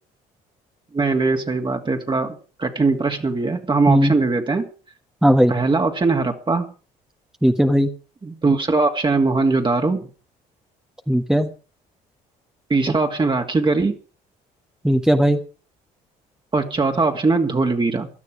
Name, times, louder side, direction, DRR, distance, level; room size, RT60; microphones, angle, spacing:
voice 1, 0.9-4.7 5.5-6.7 8.2-10.1 12.7-14.0 16.5-18.1, right 3 dB, 25° right, 3 dB, 2.5 m, -20 dB
voice 2, 5.2-5.5 7.4-7.9 11.1-11.5 14.8-15.4, equal, 5° right, 5 dB, 1.5 m, -17 dB
17.0 x 12.0 x 5.0 m, 0.36 s
supercardioid pair, 70°, 18 cm